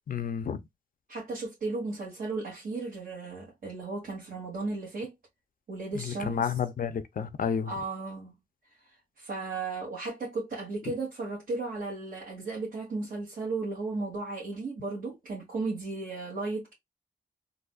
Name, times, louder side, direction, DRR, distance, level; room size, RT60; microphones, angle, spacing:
voice 1, 0.1-0.6 5.9-7.7, left 7 dB, 70° left, 0.6 m, -31 dB
voice 2, 1.1-5.1 5.7-6.5 7.7-8.3 9.2-16.7, right 3 dB, 80° right, 1.8 m, -35 dB
3.9 x 2.6 x 2.3 m
cardioid pair, 70°, 15 cm